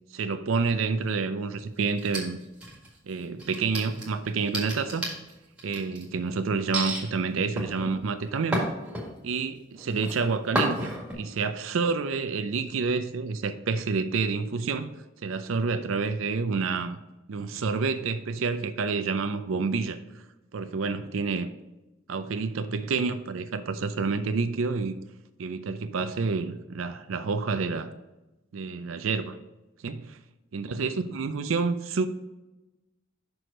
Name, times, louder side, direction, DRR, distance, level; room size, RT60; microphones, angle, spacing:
voice 1, 0.1-2.4 3.0-5.1 5.6-8.6 9.2-14.9 15.2-17.0 17.3-20.0 20.5-21.5 22.1-25.0 25.4-27.9 28.5-29.4 29.8-30.2 30.5-32.1, right 4 dB, 80° right, 10 dB, 0.5 m, -28 dB
sound 1, 2.0-3.0 3.4-6.0 6.7-7.0 7.6-9.4 9.8-10.1 10.6-11.1, right 1 dB, 5° right, 1.8 m, -31 dB
6.1 x 4.7 x 5.0 m, 1.0 s
head